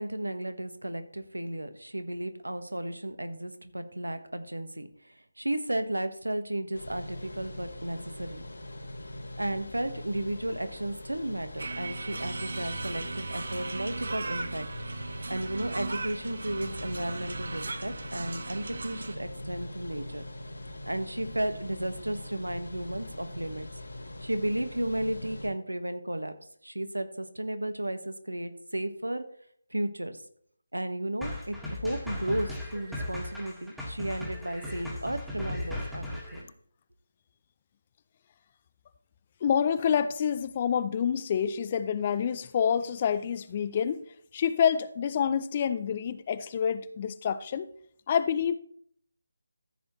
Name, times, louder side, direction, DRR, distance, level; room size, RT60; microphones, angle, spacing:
voice 1, 0.0-8.4 9.4-14.7 15.3-20.2 20.9-23.7 24.2-26.3 26.6-29.2 29.7-30.2 30.7-36.5, right 1 dB, 90° right, 9 dB, 1.3 m, -34 dB
sound 1, 6.7-25.5, left 1 dB, 70° left, 3.0 m, -42 dB
sound 2, 11.6-19.2, right 3 dB, 60° right, 0.8 m, -37 dB
sound 3, 31.2-36.4, left 1 dB, ahead, 1.8 m, -37 dB
voice 2, 39.4-44.0 44.3-47.7 48.1-48.6, left 8 dB, 30° left, 13 dB, 0.5 m, -27 dB
14.0 x 6.9 x 3.1 m, 0.62 s
figure-of-eight pair, 155°, 0 cm